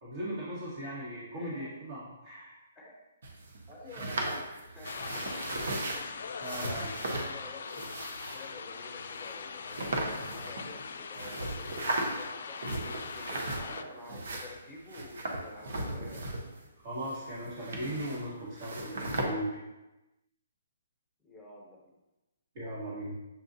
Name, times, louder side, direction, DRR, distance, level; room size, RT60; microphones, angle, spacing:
voice 1, 0.0-2.6 6.4-6.9 16.8-19.5 22.5-23.1, equal, 50° right, -9 dB, 1.4 m, -38 dB
voice 2, 1.3-1.7 2.7-2.9 3.7-5.1 5.9-7.8 8.1-11.8 12.1-16.2 21.2-21.9, left 1 dB, 5° left, -3 dB, 1.2 m, -49 dB
sound 1, 3.2-6.0 6.4-7.3 7.7-8.4 9.1-9.3 9.7-10.8 11.1-12.3 12.6-13.8 14.1-16.7 16.9-18.3 18.6-19.2, right 2 dB, 65° right, 0.9 m, -36 dB
sound 2, 4.8-13.8, left 5 dB, 65° left, 0.3 m, -41 dB
7.3 x 2.4 x 2.7 m, 1.0 s
hypercardioid pair, 145°, 0 cm